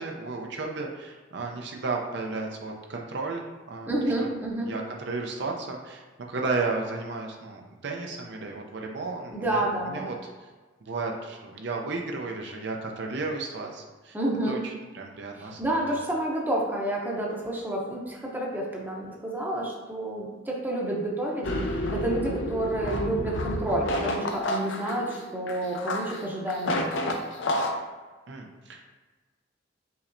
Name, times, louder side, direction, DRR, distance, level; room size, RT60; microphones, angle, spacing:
voice 1, 0.0-3.9 4.2-4.3 4.6-10.2 10.8-14.2 14.4-16.0 28.3-28.8, right 3 dB, 65° right, 1 dB, 0.6 m, -33 dB
voice 2, 3.9-4.7 9.3-10.1 14.1-14.6 15.4-27.1, right 1 dB, 10° right, -2 dB, 0.7 m, -29 dB
sound 1, 21.4-27.7, left 1 dB, 85° left, 0.6 m, -30 dB
5.6 x 3.2 x 2.6 m, 1.3 s
head